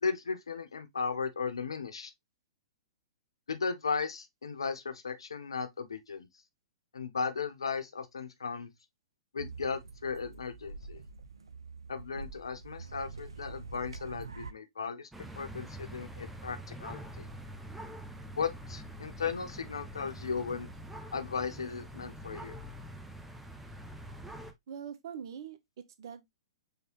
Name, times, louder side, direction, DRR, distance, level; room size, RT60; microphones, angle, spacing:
voice 1, 0.0-2.1 3.5-6.3 6.9-8.7 9.3-11.0 11.9-15.1 15.4-17.3 18.4-20.7 21.1-22.6, left 5 dB, 75° left, 0.8 m, -36 dB
sound 1, 9.4-14.5, right 4 dB, 80° right, 0.6 m, -45 dB
sound 2, 15.1-24.5, right 1 dB, 5° right, 0.7 m, -45 dB
voice 2, 24.7-26.3, right 8 dB, 55° right, 0.9 m, -43 dB
5.0 x 3.2 x 2.9 m
figure-of-eight pair, 110°, 3 cm